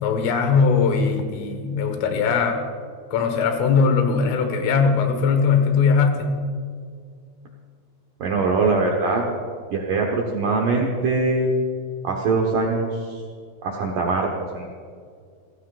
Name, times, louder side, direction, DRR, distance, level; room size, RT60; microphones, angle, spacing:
voice 1, 0.0-2.6 3.1-6.3, left 5 dB, 85° left, 6 dB, 4.1 m, -20 dB
voice 2, 8.2-9.2 9.7-11.5 12.0-13.2 13.6-14.8, right 3 dB, 75° right, 0 dB, 1.9 m, -22 dB
29.0 x 16.0 x 2.5 m, 2.1 s
omnidirectional pair, 5.6 m